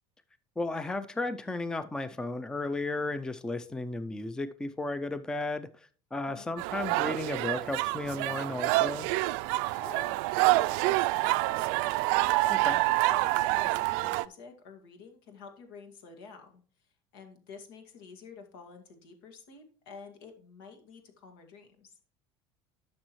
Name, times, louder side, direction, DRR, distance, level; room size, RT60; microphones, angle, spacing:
voice 1, 0.6-9.1 12.5-12.8, left 2 dB, 5° left, 13 dB, 0.4 m, -34 dB
sound 1, 6.6-14.3, right 20 dB, 75° right, 0.4 m, -27 dB
voice 2, 9.7-21.9, left 5 dB, 85° left, 5 dB, 2.1 m, -50 dB
11.5 x 6.2 x 3.1 m, 0.41 s
cardioid pair, 140°, 11 cm